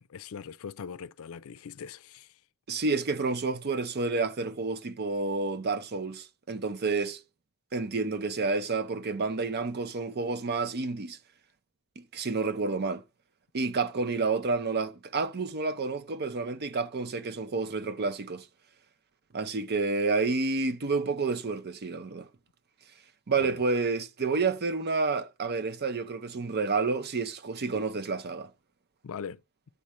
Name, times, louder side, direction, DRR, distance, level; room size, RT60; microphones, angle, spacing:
voice 1, 0.0-2.4 23.4-23.6 29.0-29.4, left 6 dB, 70° left, 0.4 m, -41 dB
voice 2, 2.7-7.2 7.7-11.2 12.1-13.0 13.5-18.5 19.3-22.3 23.3-28.5, right 4 dB, 50° right, 0.6 m, -29 dB
8.3 x 4.2 x 5.0 m
head